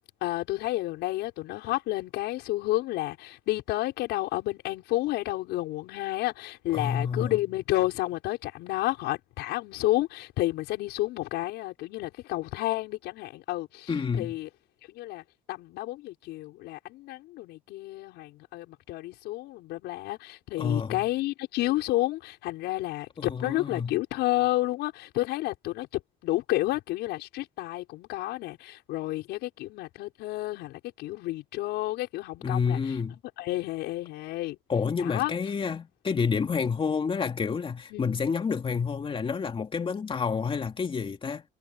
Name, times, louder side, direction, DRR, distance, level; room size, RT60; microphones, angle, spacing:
voice 1, 0.2-14.5 14.9-32.8 33.4-34.6 35.0-35.3 37.9-38.2, left 17 dB, 85° left, 6.2 m, -31 dB
voice 2, 6.7-7.4 13.9-14.4 20.6-21.0 23.2-24.0 32.4-33.2 34.7-41.4, left 6 dB, 30° left, 2.7 m, -29 dB
cardioid pair, 110°, 17 cm